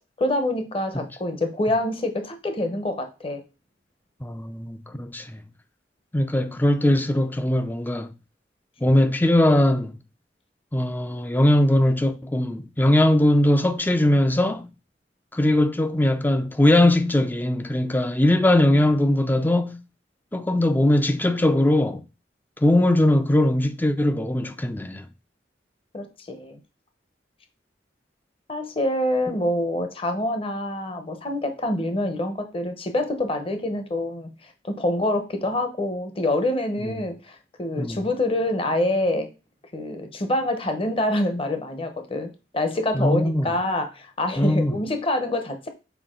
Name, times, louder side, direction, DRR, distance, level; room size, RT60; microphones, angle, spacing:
voice 1, 0.2-3.4 25.9-26.6 28.5-39.3 39.7-45.7, left 1 dB, 30° left, 0.9 m, -26 dB
voice 2, 4.2-5.4 6.1-8.1 8.8-10.0 10.7-14.7 15.3-19.8 20.3-22.0 22.6-25.0 36.9-37.0 37.8-38.1 42.9-43.5 44.4-44.7, left 1 dB, 10° left, 0.5 m, -20 dB
7.1 x 4.7 x 3.7 m
head